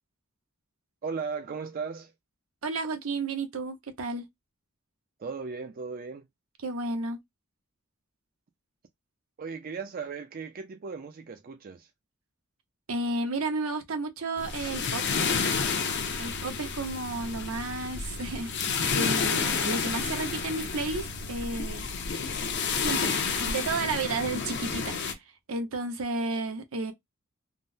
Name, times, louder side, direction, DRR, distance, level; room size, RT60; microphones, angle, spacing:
voice 1, 1.0-2.1 5.2-6.3 9.4-11.9, right 5 dB, 45° right, 0.4 m, -36 dB
voice 2, 2.6-4.2 6.6-7.2 12.9-15.0 16.2-21.9 22.8-25.2 25.5-26.9, right 3 dB, 75° right, 0.8 m, -32 dB
sound 1, 14.4-25.1, left 5 dB, 55° left, 0.7 m, -30 dB
3.6 x 2.1 x 2.6 m
head